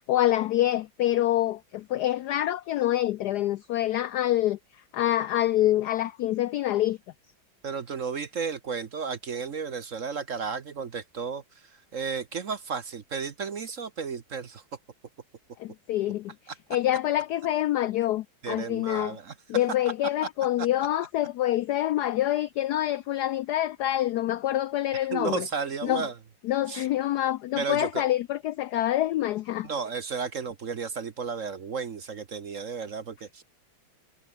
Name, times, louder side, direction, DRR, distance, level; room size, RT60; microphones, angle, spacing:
voice 1, 0.1-4.6 4.9-7.0 15.6-16.3 16.7-19.2 19.5-25.4 25.8-26.0 26.4-29.7, left 13 dB, 75° left, 0.9 m, -26 dB
voice 2, 7.6-14.6 16.5-16.6 18.4-19.3 20.6-20.7 24.9-26.2 26.7-26.9 27.6-28.1 29.6-33.4, right 5 dB, 50° right, 1.2 m, -33 dB
omnidirectional pair, 2.2 m